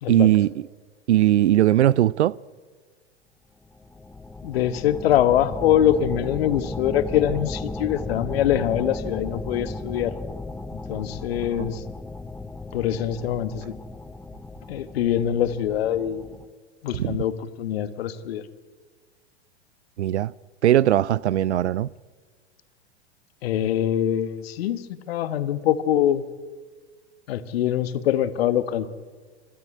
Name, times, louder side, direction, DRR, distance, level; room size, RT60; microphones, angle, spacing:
voice 1, 0.1-0.7 1.1-2.4 11.6-11.7 16.9-17.2 20.0-20.3 20.6-21.9, right 12 dB, 75° right, 0.5 m, -19 dB
sound 1, 3.6-16.5, left 3 dB, 5° left, 0.5 m, -35 dB
voice 2, 4.4-10.1 10.7-11.8 12.7-13.7 14.7-16.3 16.8-18.4 23.4-26.2 27.3-28.9, left 10 dB, 60° left, 1.3 m, -24 dB
26.0 x 13.0 x 8.5 m
figure-of-eight pair, 100°, 34 cm